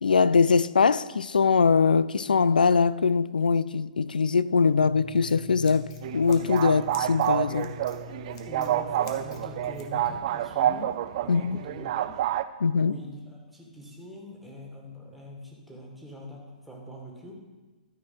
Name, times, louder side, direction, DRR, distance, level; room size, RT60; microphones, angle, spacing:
voice 1, 0.0-6.8 7.1-7.8 11.3-11.6 12.6-12.9, left 5 dB, 85° left, 0.3 m, -22 dB
Scissors, 4.8-10.2, left 8 dB, 45° left, 1.2 m, -44 dB
sound 1, 6.0-12.4, right 12 dB, 45° right, 0.4 m, -28 dB
voice 2, 8.5-12.1 12.7-17.3, equal, ahead, 1.9 m, -43 dB
12.5 x 4.7 x 5.7 m
hypercardioid pair, 130°, 5 cm